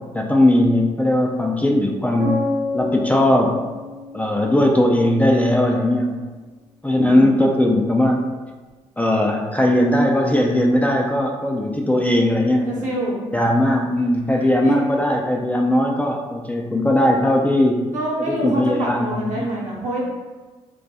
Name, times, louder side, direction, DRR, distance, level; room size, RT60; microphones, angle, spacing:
voice 1, 0.1-2.4 2.7-3.6 4.1-6.2 6.8-8.2 9.0-12.8 13.3-17.8 18.2-19.5, left 1 dB, 10° left, 0 dB, 0.3 m, -18 dB
sound 1, 2.2-6.1, left 2 dB, 35° right, 0.7 m, -30 dB
voice 2, 6.9-7.4 12.7-13.2 14.4-14.7 17.9-20.0, right 1 dB, 65° right, -4 dB, 0.8 m, -26 dB
2.2 x 2.2 x 2.7 m, 1.3 s
hypercardioid pair, 50°, 14 cm